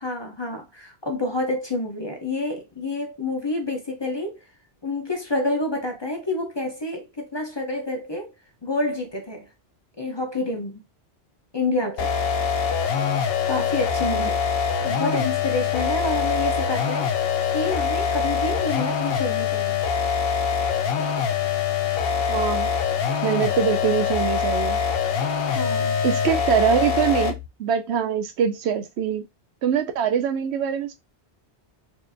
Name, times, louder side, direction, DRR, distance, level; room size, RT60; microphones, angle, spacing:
voice 1, 0.0-4.4 4.8-8.3 8.6-9.5 10.0-10.8 11.5-12.1 13.5-14.4 14.8-17.1 17.5-19.8 25.5-26.0, left 2 dB, 30° left, 0.5 m, -28 dB
sound 1, 12.0-27.5, left 6 dB, 65° left, 0.7 m, -24 dB
voice 2, 22.3-22.7 23.2-24.8 26.0-29.3 29.6-30.9, right 8 dB, 70° right, 0.9 m, -23 dB
4.4 x 2.5 x 2.5 m
omnidirectional pair, 1.2 m